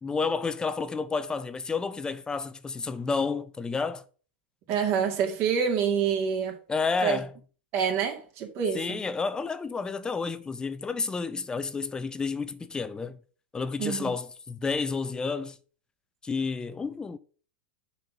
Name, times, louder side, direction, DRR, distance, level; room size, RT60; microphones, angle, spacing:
voice 1, 0.0-4.0 6.7-7.3 8.7-13.2 13.5-15.6 16.2-17.2, left 4 dB, 15° left, 0.5 m, -30 dB
voice 2, 4.7-6.5 7.0-7.2 7.7-9.0 13.8-14.1, right 7 dB, 45° right, 2.3 m, -27 dB
6.5 x 4.2 x 6.0 m
hypercardioid pair, 130°, 6 cm